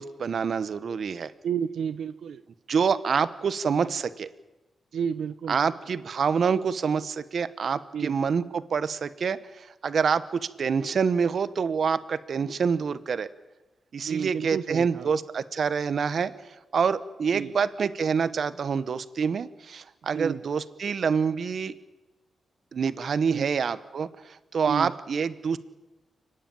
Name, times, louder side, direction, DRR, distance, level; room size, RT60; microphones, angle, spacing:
voice 1, 0.0-1.3 2.7-4.3 5.5-13.3 13.9-16.3 16.7-21.7 22.7-25.6, right 6 dB, 55° right, 14 dB, 0.9 m, -27 dB
voice 2, 1.4-2.4 4.9-5.6 7.9-8.1 14.0-15.1 17.3-17.5 20.1-20.4 23.3-23.5 24.7-24.9, right 7 dB, 80° right, 11 dB, 0.6 m, -31 dB
30.0 x 10.0 x 8.9 m, 1.1 s
wide cardioid pair, 130°, 0 cm